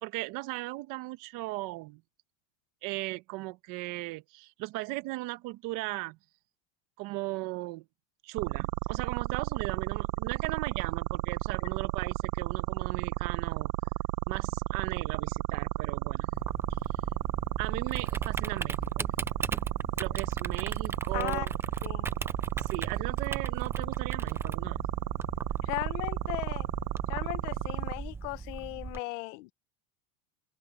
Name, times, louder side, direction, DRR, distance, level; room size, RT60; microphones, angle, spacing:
voice 1, 0.0-2.0 2.8-6.2 7.0-7.8 8.2-13.7 14.3-16.4 16.8-17.0 17.6-19.1 20.0-21.5 22.6-24.9, right 21 dB, 55° right, 1.3 m, -37 dB
sound 1, 8.4-27.9, right 20 dB, 85° right, 1.0 m, -32 dB
Typing, 16.3-29.0, right 4 dB, 5° right, 0.3 m, -39 dB
voice 2, 21.1-21.5 21.8-22.1 25.6-26.7 27.1-29.5, left 23 dB, 70° left, 1.2 m, -36 dB
open air
supercardioid pair, 145°, 39 cm